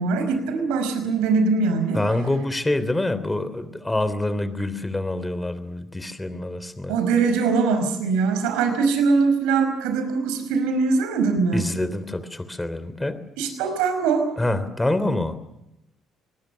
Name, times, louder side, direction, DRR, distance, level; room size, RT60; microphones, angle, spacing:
voice 1, 0.0-2.0 6.9-11.6 13.4-14.3, right 4 dB, 75° right, 7 dB, 5.2 m, -22 dB
voice 2, 1.9-7.0 11.5-13.2 14.4-15.4, left 1 dB, 15° left, 13 dB, 3.3 m, -26 dB
26.0 x 20.5 x 7.0 m, 0.89 s
hypercardioid pair, 50°, 0 cm